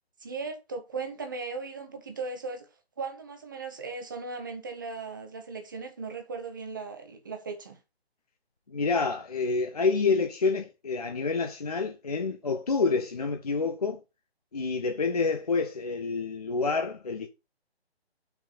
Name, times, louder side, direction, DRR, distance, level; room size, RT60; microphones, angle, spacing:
voice 1, 0.2-2.7 3.0-7.8, right 4 dB, 20° right, 0.8 m, -37 dB
voice 2, 8.7-14.0 14.5-17.3, left 4 dB, 35° left, 0.7 m, -28 dB
5.7 x 4.8 x 5.2 m
figure-of-eight pair, 150°, 32 cm